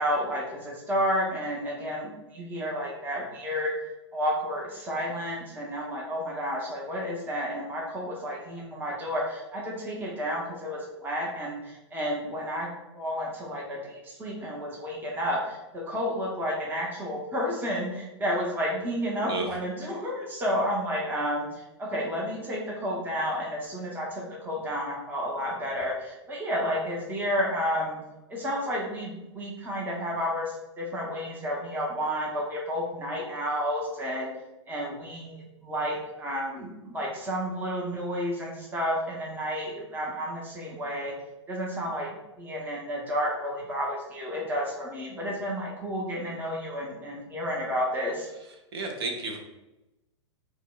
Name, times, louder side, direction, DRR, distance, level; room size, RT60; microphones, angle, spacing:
voice 1, 0.0-3.7 4.1-28.0 28.3-34.3 34.7-41.1 41.5-42.1 42.4-48.3, equal, 10° right, -3 dB, 0.6 m, -31 dB
voice 2, 48.7-49.4, right 3 dB, 55° right, 2 dB, 0.6 m, -31 dB
4.4 x 2.0 x 2.3 m, 0.97 s
figure-of-eight pair, 100°, 15 cm